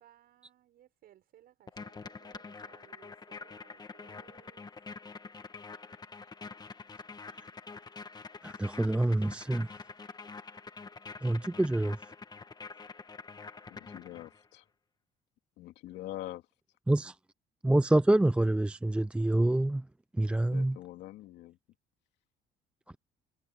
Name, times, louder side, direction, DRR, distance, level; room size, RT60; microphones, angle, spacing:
voice 1, 0.0-4.7, right 12 dB, 65° right, 6.8 m, -62 dB
sound 1, 1.7-14.5, left 4 dB, 25° left, 1.4 m, -46 dB
voice 2, 8.4-9.7 11.2-12.0 16.9-17.1 17.6-19.8 20.2-20.8, right 1 dB, 5° right, 0.5 m, -26 dB
voice 3, 13.7-14.6 15.6-16.4 20.5-21.6, left 15 dB, 85° left, 2.5 m, -44 dB
cardioid pair, 110°, 17 cm